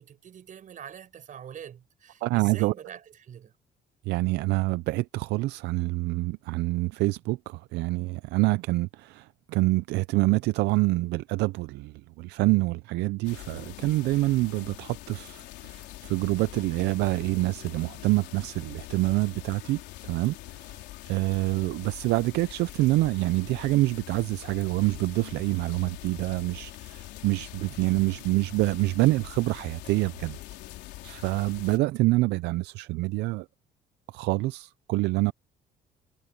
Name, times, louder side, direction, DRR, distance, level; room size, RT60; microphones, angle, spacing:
voice 1, 0.0-3.5, right 9 dB, 50° right, 7.9 m, -44 dB
voice 2, 2.2-2.7 4.1-20.8 21.1-30.4 31.0-33.5 34.1-35.3, right 20 dB, 85° right, 0.5 m, -26 dB
sound 1, 13.2-31.8, left 17 dB, 90° left, 3.6 m, -44 dB
cardioid pair, 110°, 17 cm